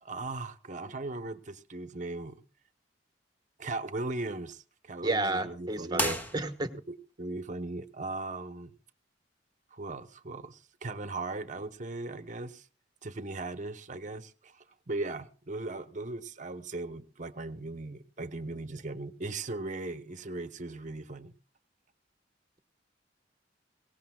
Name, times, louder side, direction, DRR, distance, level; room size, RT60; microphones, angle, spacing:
voice 1, 0.0-2.4 3.6-6.2 6.9-8.7 9.7-12.7 13.0-21.4, right 2 dB, 45° right, 1.0 m, -38 dB
voice 2, 5.0-6.7, right 2 dB, 25° right, 1.3 m, -31 dB
sound 1, 5.9-7.0, equal, 10° left, 1.7 m, -34 dB
22.0 x 18.5 x 2.3 m
head